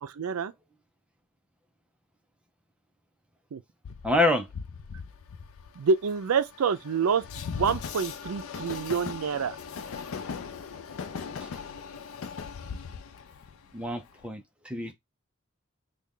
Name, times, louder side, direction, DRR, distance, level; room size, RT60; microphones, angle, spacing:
voice 1, 0.0-0.5 3.5-3.6 5.7-7.2 7.5-9.6, right 5 dB, 80° right, 0.4 m, -27 dB
Train, 3.8-14.3, left 6 dB, 70° left, 0.4 m, -39 dB
voice 2, 4.0-4.5 11.4-11.5 13.7-14.9, left 1 dB, 5° right, 0.6 m, -27 dB
3.3 x 2.3 x 3.7 m
head